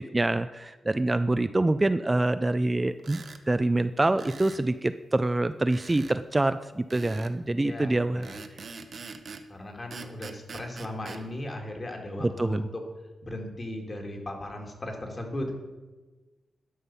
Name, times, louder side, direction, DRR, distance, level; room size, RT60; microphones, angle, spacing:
voice 1, 0.0-8.3 12.2-12.6, right 2 dB, 20° right, 11 dB, 0.3 m, -26 dB
sound 1, 3.0-3.4 4.2-4.7 5.7-6.2 6.9-7.4 8.2-9.5 9.9-11.2, right 4 dB, 55° right, 0.7 m, -43 dB
voice 2, 7.6-8.4 9.5-12.8 13.2-15.6, left 1 dB, 35° left, 2 dB, 2.1 m, -37 dB
11.5 x 5.7 x 5.5 m, 1.2 s
cardioid pair, 75°, 0 cm